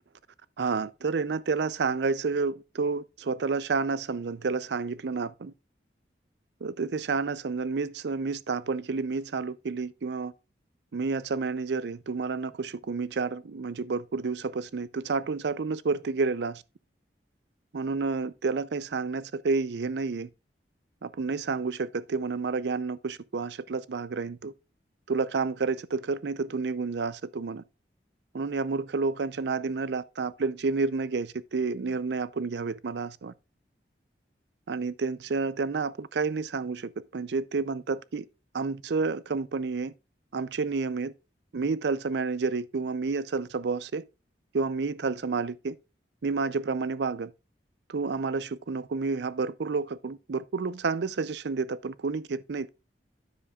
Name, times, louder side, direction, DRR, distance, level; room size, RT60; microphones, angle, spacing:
voice 1, 0.6-5.5 6.6-10.3 10.9-16.6 17.7-20.3 21.0-24.5 25.1-27.6 28.3-33.3 34.7-38.3 38.5-39.9 40.3-41.1 41.5-44.0 44.5-45.8 46.2-47.3 47.9-52.7, right 4 dB, 75° right, 0.5 m, -30 dB
9.8 x 7.2 x 2.4 m
head